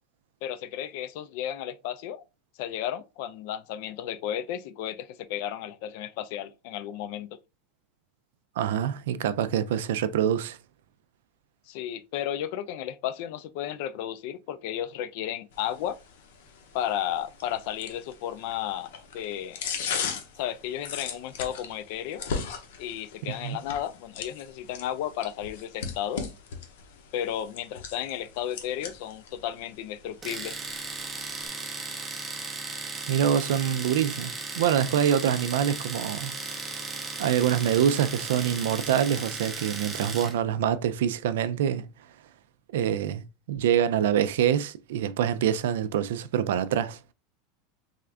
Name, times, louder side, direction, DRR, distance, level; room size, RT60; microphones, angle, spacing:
voice 1, 0.4-2.2 2.6-7.4 11.7-16.0 16.7-19.6 20.3-22.2 22.8-26.2 27.1-30.6, left 11 dB, 50° left, 0.3 m, -33 dB
voice 2, 8.6-10.6 23.3-23.6 33.1-36.3 37.2-41.9 42.7-47.0, right 9 dB, 80° right, 0.3 m, -25 dB
sound 1, 15.5-31.5, left 6 dB, 75° left, 0.7 m, -39 dB
Domestic sounds home sounds, 30.2-40.4, right 3 dB, 10° right, 0.5 m, -36 dB
3.5 x 2.4 x 3.3 m
supercardioid pair, 175°, 0 cm